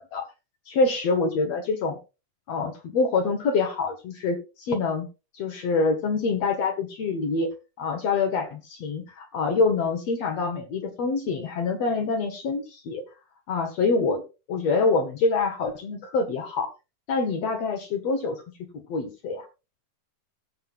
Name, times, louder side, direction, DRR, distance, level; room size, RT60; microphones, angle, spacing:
voice 1, 0.7-2.0 2.5-5.1 5.3-7.5 7.8-13.0 13.5-14.2 14.5-16.7 17.1-18.4 18.9-19.5, left 4 dB, 65° left, 5 dB, 1.8 m, -25 dB
16.5 x 7.6 x 2.4 m, 0.29 s
omnidirectional pair, 4.3 m